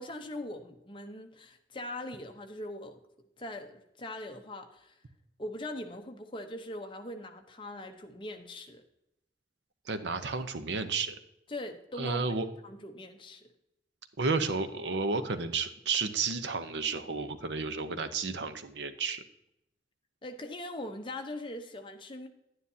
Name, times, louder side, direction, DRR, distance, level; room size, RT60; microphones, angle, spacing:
voice 1, 0.0-3.0 3.4-5.0 5.4-8.8 11.5-12.2 12.6-13.4 20.2-22.3, left 1 dB, 30° left, 5 dB, 0.9 m, -41 dB
voice 2, 9.9-11.2 12.0-12.5 14.2-19.2, right 4 dB, 85° right, 9 dB, 0.8 m, -32 dB
11.0 x 9.7 x 2.8 m, 0.84 s
head